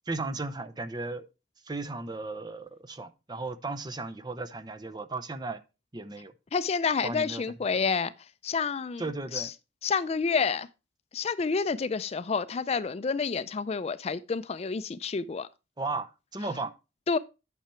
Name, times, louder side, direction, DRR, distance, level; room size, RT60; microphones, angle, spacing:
voice 1, 0.1-1.3 1.6-5.6 5.9-6.3 7.0-7.4 9.0-9.5 15.8-16.7, right 3 dB, 25° right, 0.7 m, -35 dB
voice 2, 6.5-8.1 8.4-9.0 9.3-9.5 9.8-10.7 11.1-15.5 17.1-17.2, left 5 dB, 35° left, 0.4 m, -29 dB
10.5 x 5.9 x 4.4 m
head